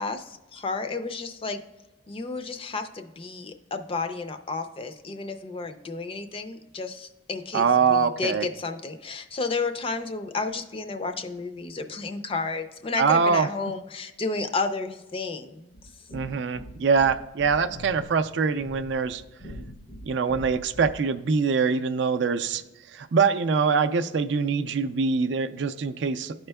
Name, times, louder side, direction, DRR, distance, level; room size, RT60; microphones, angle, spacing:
voice 1, 0.0-1.6 2.1-15.8, left 3 dB, 30° left, 8 dB, 0.4 m, -32 dB
voice 2, 7.5-8.5 13.0-13.5 16.1-19.2 20.1-22.6 22.9-26.3, right 5 dB, 65° right, 10 dB, 0.4 m, -23 dB
sound 1, 15.7-21.1, equal, 70° left, 0.9 m, -44 dB
12.0 x 4.4 x 2.2 m, 1.1 s
head